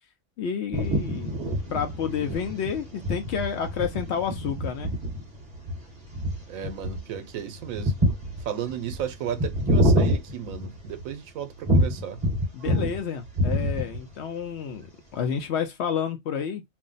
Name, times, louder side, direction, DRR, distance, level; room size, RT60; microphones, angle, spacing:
voice 1, 0.4-1.4 1.7-4.9 12.5-16.6, left 7 dB, 65° left, 0.8 m, -30 dB
sound 1, 0.7-11.1 11.7-13.0 13.3-14.1, equal, 20° right, 1.2 m, -26 dB
voice 2, 6.5-7.9 8.5-12.2, right 9 dB, 80° right, 1.0 m, -34 dB
2.6 x 2.1 x 3.8 m
omnidirectional pair, 1.4 m